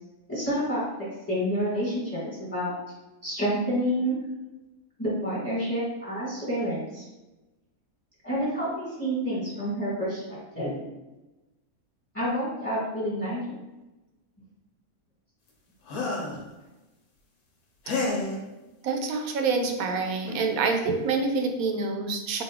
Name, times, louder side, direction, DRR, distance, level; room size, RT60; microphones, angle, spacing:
voice 1, 0.3-0.8 1.3-2.7 3.2-4.2 5.0-7.0 8.2-10.7 12.1-13.6, equal, 10° left, -8 dB, 1.4 m, -28 dB
sound 1, 15.9-16.4 17.8-18.4 19.8-19.9 20.2-20.5, left 2 dB, 75° left, 1.3 m, -30 dB
voice 2, 18.8-22.4, right 4 dB, 75° right, 5 dB, 1.0 m, -27 dB
4.1 x 2.7 x 3.5 m, 1.1 s
omnidirectional pair, 1.6 m